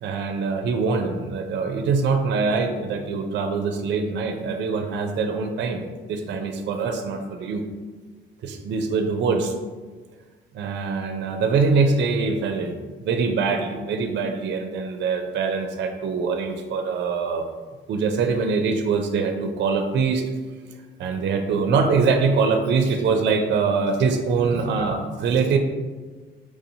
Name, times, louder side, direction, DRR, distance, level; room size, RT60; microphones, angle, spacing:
voice 1, 0.0-7.6 8.4-9.5 10.5-12.7 13.0-17.4 17.9-20.2 21.0-25.6, right 4 dB, 65° right, 5 dB, 0.4 m, -23 dB
4.7 x 2.7 x 2.7 m, 1.4 s
cardioid pair, 90°, 20 cm